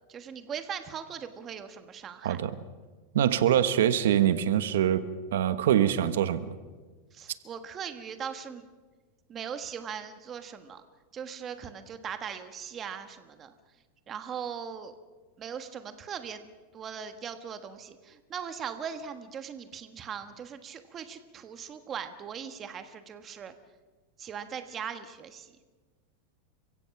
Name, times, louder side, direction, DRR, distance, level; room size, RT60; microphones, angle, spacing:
voice 1, 0.1-2.4 7.1-8.7 9.3-10.8 11.1-13.5 14.1-14.9 15.4-16.5 16.7-23.5 24.2-25.5, right 7 dB, 25° right, 9 dB, 1.3 m, -39 dB
voice 2, 2.2-2.6 3.1-5.0 5.3-6.5, right 10 dB, 90° right, 12 dB, 1.1 m, -24 dB
29.5 x 16.0 x 5.9 m, 1.4 s
supercardioid pair, 150°, 0 cm